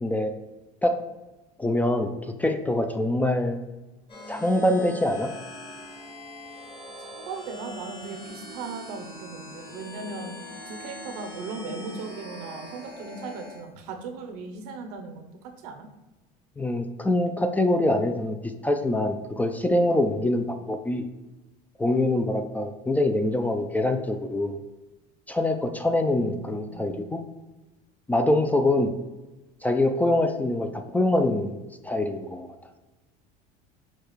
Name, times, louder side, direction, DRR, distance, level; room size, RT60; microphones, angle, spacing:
voice 1, 0.0-0.3 0.8-1.0 1.6-3.6 4.3-5.3 16.6-18.4 18.6-21.0 21.8-24.6 25.3-27.2 28.1-28.9 29.6-31.6 31.8-32.5, left 1 dB, 10° left, 6 dB, 0.3 m, -24 dB
sound 1, 4.1-13.6, equal, 25° left, 1.4 m, -42 dB
voice 2, 7.0-10.4 10.7-15.9 26.2-27.1, right 4 dB, 85° right, 5 dB, 0.7 m, -38 dB
6.5 x 2.3 x 3.1 m, 1.1 s
supercardioid pair, 110°, 19 cm